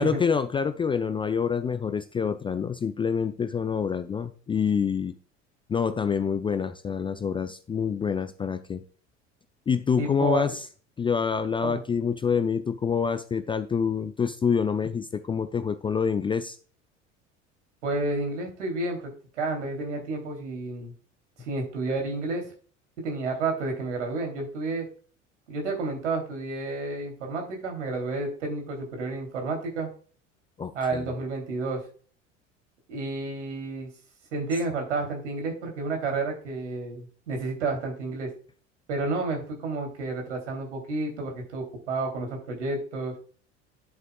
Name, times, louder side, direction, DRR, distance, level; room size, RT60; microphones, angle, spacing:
voice 1, 0.0-5.1 5.7-8.8 9.7-10.6 11.0-16.6 30.6-31.1, left 6 dB, 15° left, 12 dB, 0.4 m, -27 dB
voice 2, 10.0-10.6 11.6-11.8 17.8-19.1 19.4-20.9 21.4-22.5 23.0-24.9 25.5-29.9 30.7-31.8 32.9-33.9 34.3-38.3 38.9-43.1, right 3 dB, 70° right, 3 dB, 3.2 m, -30 dB
10.5 x 7.6 x 2.3 m, 0.41 s
figure-of-eight pair, 70°, 37 cm